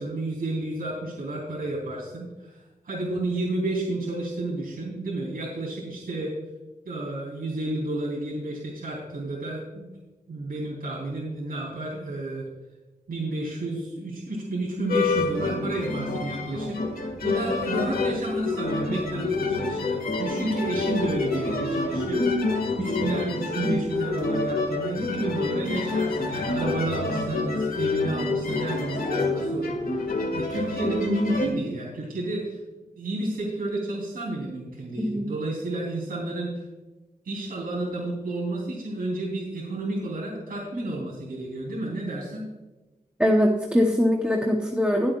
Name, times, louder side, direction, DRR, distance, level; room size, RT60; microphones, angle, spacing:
voice 1, 0.0-6.3 6.8-9.9 10.3-12.5 13.1-22.5 22.8-32.6 33.0-36.6 37.2-42.4, right 2 dB, 75° right, -5 dB, 3.3 m, -31 dB
sound 1, 14.9-31.5, left 3 dB, 75° left, 1.8 m, -28 dB
voice 2, 43.2-45.1, equal, 5° right, 0 dB, 0.9 m, -22 dB
21.0 x 7.7 x 2.4 m, 1.1 s
wide cardioid pair, 150°, 15 cm